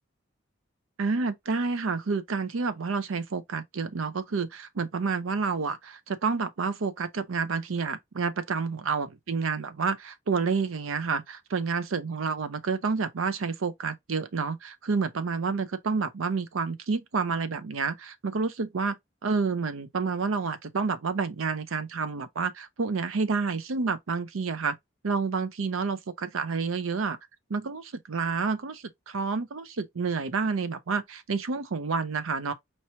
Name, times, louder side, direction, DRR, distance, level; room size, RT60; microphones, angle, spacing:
voice 1, 1.0-19.0 19.2-24.8 25.0-27.2 27.5-32.5, right 4 dB, 80° right, 0.6 m, -29 dB
4.5 x 3.0 x 2.8 m
head